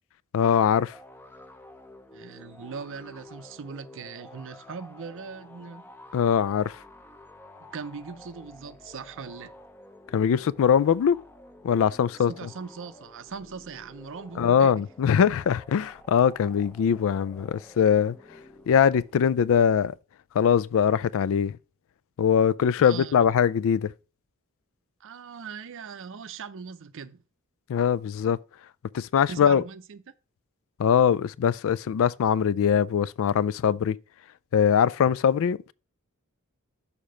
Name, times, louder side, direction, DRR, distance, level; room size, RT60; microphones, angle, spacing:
voice 1, 0.3-0.9 6.1-6.7 10.1-11.2 11.6-12.3 14.4-18.2 18.7-19.9 20.3-21.6 22.2-23.9 27.7-28.4 28.9-29.6 30.8-34.0 34.5-35.7, left 7 dB, 65° left, 0.3 m, -22 dB
sound 1, 0.9-19.3, left 1 dB, 10° left, 0.6 m, -50 dB
voice 2, 2.1-5.8 7.7-9.5 12.3-14.8 22.8-23.3 25.0-27.2 29.3-30.0, right 5 dB, 60° right, 0.5 m, -40 dB
6.7 x 4.3 x 5.0 m
head